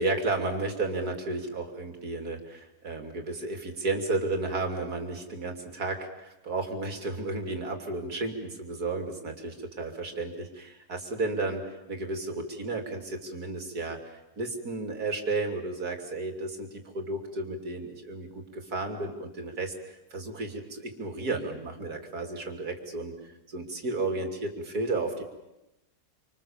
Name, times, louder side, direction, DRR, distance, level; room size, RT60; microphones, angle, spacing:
voice 1, 0.0-19.7 20.1-23.1 23.5-25.2, right 2 dB, 70° right, 4 dB, 3.5 m, -33 dB
27.5 x 26.0 x 7.3 m, 0.94 s
omnidirectional pair, 1.7 m